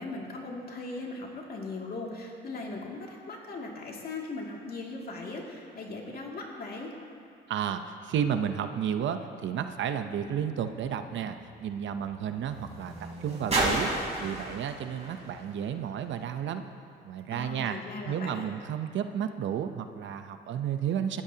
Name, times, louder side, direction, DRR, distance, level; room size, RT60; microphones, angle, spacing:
voice 1, 0.0-6.9 17.3-18.5, left 3 dB, 50° left, -1 dB, 2.4 m, -39 dB
voice 2, 7.5-13.9 14.2-16.6 17.0-17.8 18.0-21.2, right 8 dB, 70° right, 8 dB, 0.8 m, -32 dB
sound 1, 11.6-16.5 17.3-17.4, right 2 dB, 35° right, 3.8 m, -35 dB
19.0 x 13.5 x 2.9 m, 2.4 s
cardioid pair, 90°, 20 cm